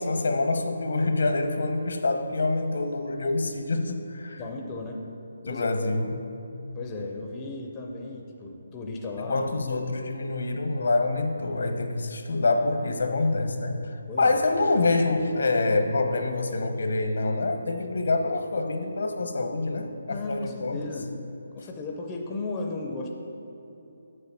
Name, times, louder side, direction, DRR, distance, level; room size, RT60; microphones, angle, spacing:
voice 1, 0.0-4.4 5.4-6.3 9.2-20.8, left 3 dB, 70° left, 5 dB, 0.9 m, -26 dB
voice 2, 4.4-5.0 5.4-5.7 6.8-9.4 14.1-14.4 20.1-21.1 21.5-23.1, left 3 dB, 15° left, 0 dB, 0.5 m, -35 dB
6.9 x 6.7 x 5.7 m, 2.9 s
hypercardioid pair, 175°, 0 cm